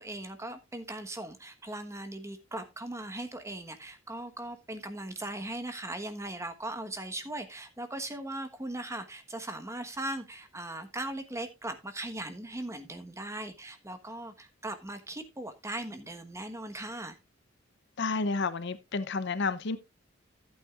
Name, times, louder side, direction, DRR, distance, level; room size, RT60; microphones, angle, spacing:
voice 1, 0.0-17.2, right 1 dB, 15° right, 1.2 m, -39 dB
voice 2, 18.0-19.8, left 4 dB, 60° left, 0.7 m, -30 dB
14.0 x 8.9 x 2.4 m
head